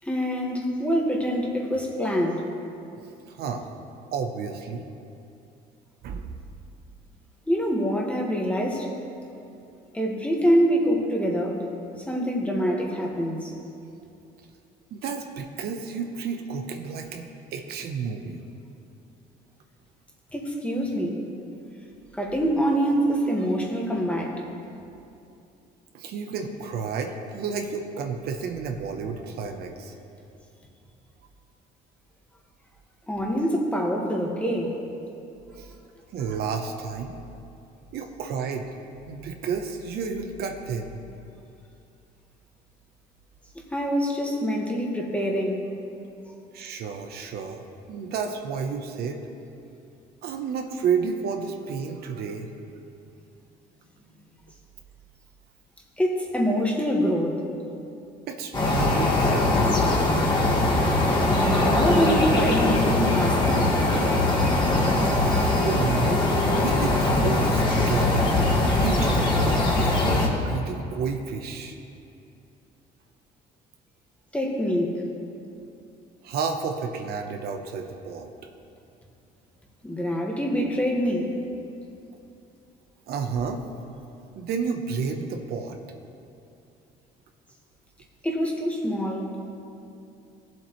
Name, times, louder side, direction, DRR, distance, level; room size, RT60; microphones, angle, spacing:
voice 1, 0.0-2.4 7.5-8.9 9.9-11.6 12.1-13.5 20.3-21.2 22.1-24.4 33.1-34.7 43.7-45.7 56.0-57.5 61.3-63.8 74.3-75.0 79.8-81.4 88.2-89.3, equal, 5° left, 0 dB, 1.6 m, -25 dB
voice 2, 3.3-3.7 4.1-4.9 6.0-6.3 14.9-18.4 25.9-29.9 35.5-35.8 36.1-37.2 37.9-38.7 39.0-40.9 46.5-49.2 50.2-52.5 58.3-59.8 65.2-66.2 66.5-68.4 68.8-71.8 76.2-78.3 83.1-83.6 84.4-85.8, right 5 dB, 70° right, 4 dB, 0.9 m, -31 dB
sound 1, 58.5-70.3, left 2 dB, 25° left, 1.9 m, -21 dB
18.0 x 7.6 x 3.1 m, 2.7 s
cardioid pair, 110°, 17 cm